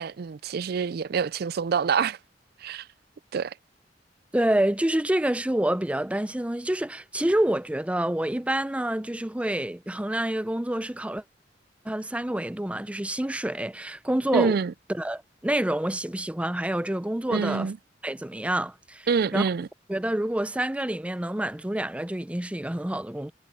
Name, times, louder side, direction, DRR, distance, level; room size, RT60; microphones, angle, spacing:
voice 1, 0.0-2.2 2.6-2.9 3.3-3.5 14.3-14.7 17.3-17.8 19.1-19.7, right 6 dB, 60° right, 0.4 m, -26 dB
voice 2, 4.3-11.2 11.9-14.6 14.9-17.7 18.0-19.5 19.9-23.3, right 1 dB, 5° right, 0.5 m, -27 dB
head